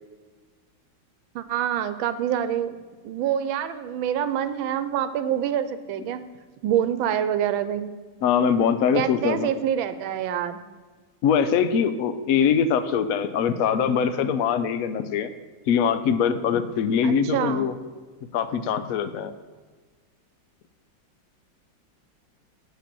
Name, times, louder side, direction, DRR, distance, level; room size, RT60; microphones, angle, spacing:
voice 1, 1.3-2.8 3.0-6.2 6.6-7.9 8.9-10.6 17.0-17.7, right 10 dB, 90° right, 12 dB, 1.4 m, -26 dB
voice 2, 8.2-9.5 11.2-15.3 15.7-17.7 18.3-19.3, left 7 dB, 75° left, 11 dB, 0.8 m, -22 dB
7.5 x 6.4 x 6.9 m, 1.4 s
omnidirectional pair, 2.1 m